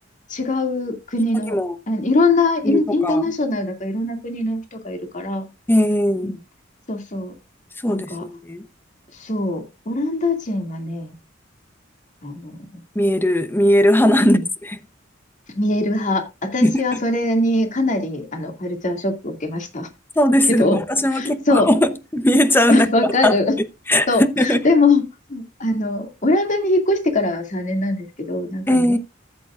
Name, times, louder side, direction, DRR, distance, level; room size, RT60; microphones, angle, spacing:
voice 1, 0.3-1.6 1.9-5.5 6.2-6.4 6.9-7.3 7.9-8.3 9.2-11.2 12.2-12.8 14.2-14.4 15.5-19.9 20.5-20.8 21.1-21.7 22.7-23.5 24.1-25.0 25.3-29.0, left 2 dB, 40° left, 2.3 m, -22 dB
voice 2, 2.6-3.2 5.7-6.4 7.8-8.7 12.9-14.4 16.6-17.0 20.2-23.3 23.9-24.6 28.7-29.0, left 1 dB, 10° left, 0.8 m, -18 dB
14.0 x 8.6 x 2.4 m
head